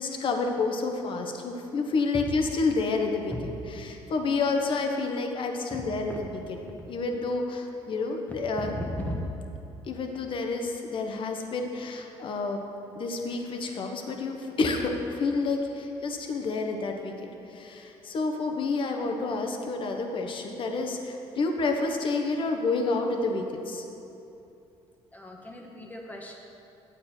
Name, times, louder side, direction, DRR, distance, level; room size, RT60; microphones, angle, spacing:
voice 1, 0.0-3.3 3.8-6.3 6.9-8.7 9.9-12.6 12.9-17.1 17.5-23.8, left 3 dB, 50° left, 3 dB, 1.1 m, -29 dB
voice 2, 8.8-9.2 25.1-26.4, left 1 dB, 15° left, 1 dB, 1.4 m, -36 dB
9.2 x 8.2 x 4.4 m, 2.8 s
cardioid pair, 90°, 11 cm